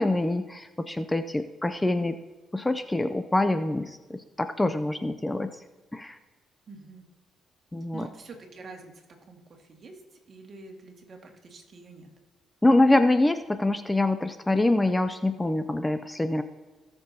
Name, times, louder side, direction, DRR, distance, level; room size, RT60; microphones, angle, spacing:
voice 1, 0.0-2.2 2.5-5.6 5.9-6.2 7.7-8.1 12.6-16.4, left 2 dB, 10° left, 10 dB, 0.5 m, -25 dB
voice 2, 6.7-7.1 7.9-8.9 9.3-12.1, right 3 dB, 45° right, 2 dB, 1.9 m, -46 dB
17.5 x 6.8 x 2.8 m, 1.3 s
cardioid pair, 90°, 0 cm